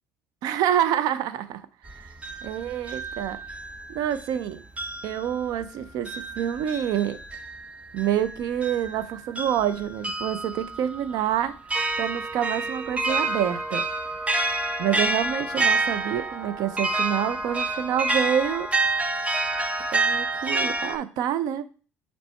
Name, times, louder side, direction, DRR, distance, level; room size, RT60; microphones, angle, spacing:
voice 1, 0.4-2.1 2.4-3.4 3.9-4.6 5.0-7.2 7.9-11.6 12.0-13.9 14.8-18.7 19.9-21.7, right 10 dB, 65° right, 0.6 m, -27 dB
sound 1, 1.9-4.4 4.8-21.0, right 2 dB, 20° right, 0.9 m, -29 dB
6.8 x 3.3 x 4.4 m
hypercardioid pair, 65°, 7 cm